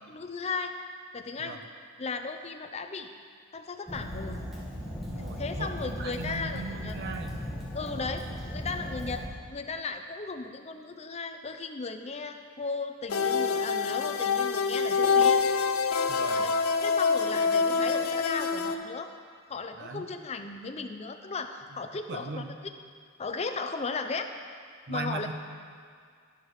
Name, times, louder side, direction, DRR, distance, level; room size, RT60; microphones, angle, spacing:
voice 1, 0.1-0.7 1.1-1.6 2.0-3.1 3.5-4.4 5.4-6.9 7.7-8.3 8.5-9.2 9.5-15.4 16.3-16.5 16.8-19.1 19.5-22.4 23.2-24.3 24.9-25.3, left 4 dB, 30° left, 7 dB, 0.5 m, -36 dB
Fire, 3.9-9.3, equal, ahead, 1.6 m, -37 dB
voice 2, 5.0-7.5 16.1-16.5 19.7-20.1 22.1-22.6 24.9-25.3, right 3 dB, 50° right, 5 dB, 0.8 m, -38 dB
sound 1, 13.1-18.7, left 5 dB, 75° left, 0.6 m, -26 dB
11.5 x 11.5 x 3.2 m, 2.1 s
head